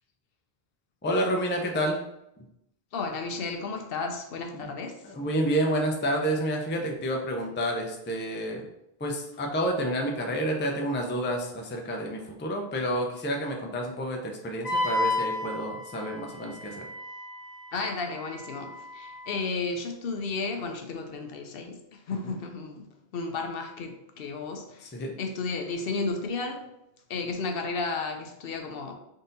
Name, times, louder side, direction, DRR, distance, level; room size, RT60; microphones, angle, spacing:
voice 1, 1.0-2.0 4.5-4.7 5.0-8.6 9.0-16.8 22.2-22.4 24.8-25.1, equal, 15° left, 1 dB, 0.4 m, -29 dB
voice 2, 2.9-5.0 17.7-22.9 23.1-24.9 25.2-26.7 27.1-28.9, left 4 dB, 70° left, 4 dB, 0.8 m, -33 dB
Wind instrument woodwind instrument, 14.6-19.3, left 2 dB, 10° right, 1.2 m, -33 dB
4.0 x 2.7 x 3.8 m, 0.84 s
omnidirectional pair, 1.0 m